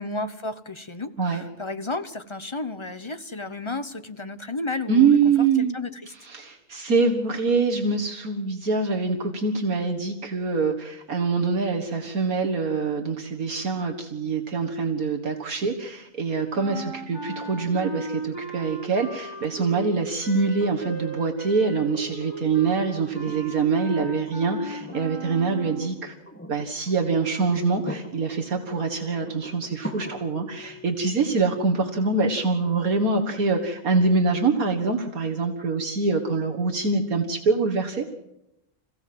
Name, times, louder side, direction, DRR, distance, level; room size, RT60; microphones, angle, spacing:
voice 1, 0.0-5.1 5.6-6.1, left 2 dB, 25° left, 11 dB, 0.7 m, -32 dB
voice 2, 4.9-5.8 6.1-26.1 26.5-38.1, right 4 dB, 70° right, 2 dB, 2.1 m, -24 dB
Clarinet - C natural minor, 16.5-26.1, right 2 dB, 15° right, 3.1 m, -37 dB
sound 1, 20.6-34.5 36.3-36.4, left 1 dB, 10° left, 2.2 m, -43 dB
27.0 x 16.0 x 7.7 m, 0.90 s
omnidirectional pair, 1.6 m